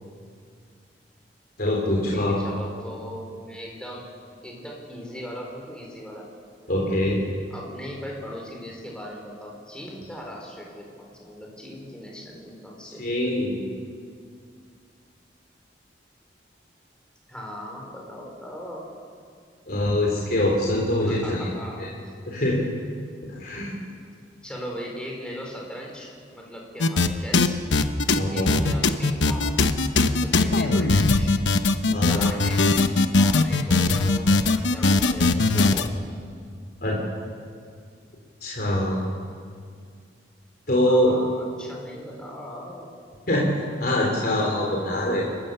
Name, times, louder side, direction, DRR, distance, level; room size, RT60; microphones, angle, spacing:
voice 1, 1.6-2.4 6.7-7.2 13.0-13.6 19.7-21.5 21.8-21.9 22.3-22.6 23.2-23.7 28.2-28.5 31.9-32.3 36.8-37.0 38.4-39.0 40.7-41.2 43.3-43.5 43.8-45.2, left 1 dB, 55° left, -3 dB, 3.6 m, -23 dB
voice 2, 2.1-4.1 4.4-6.3 7.5-13.0 17.3-18.8 21.1-21.8 24.4-27.6 28.3-29.6 30.0-31.3 32.0-32.7 33.2-35.9 40.9-42.9, equal, 5° left, -2 dB, 4.2 m, -38 dB
sound 1, 26.8-27.1 27.3-35.9, left 3 dB, 90° left, 1.0 m, -20 dB
29.5 x 15.0 x 6.8 m, 2.1 s
head